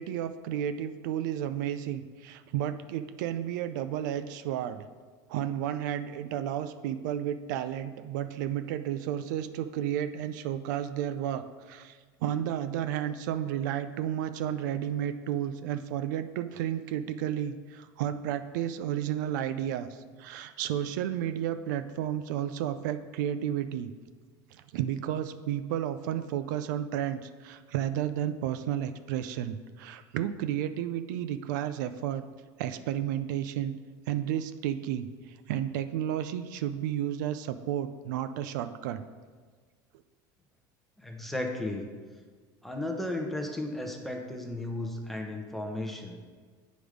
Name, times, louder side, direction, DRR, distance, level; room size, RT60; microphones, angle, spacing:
voice 1, 0.0-4.8 5.3-23.9 24.5-32.2 32.6-33.7 34.1-39.0, right 10 dB, 90° right, 11 dB, 0.4 m, -32 dB
voice 2, 41.0-41.9 42.6-46.2, left 1 dB, ahead, 2 dB, 0.9 m, -34 dB
7.9 x 5.1 x 5.0 m, 1.5 s
supercardioid pair, 140°, 10 cm